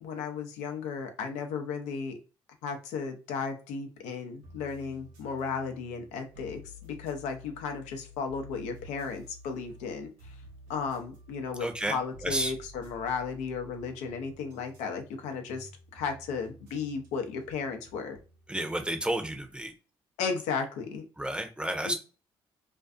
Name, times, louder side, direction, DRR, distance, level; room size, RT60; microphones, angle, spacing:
voice 1, 0.0-2.2 2.6-10.3 10.7-18.2 20.2-21.1 21.8-21.9, left 5 dB, 80° left, 5 dB, 0.5 m, -35 dB
sound 1, 4.4-19.7, left 1 dB, 85° right, 0.7 m, -52 dB
voice 2, 11.6-12.0 12.2-12.5 18.5-19.7 21.2-21.9, right 1 dB, 10° right, 6 dB, 0.7 m, -31 dB
2.5 x 2.3 x 2.3 m, 0.33 s
hypercardioid pair, 55°, 12 cm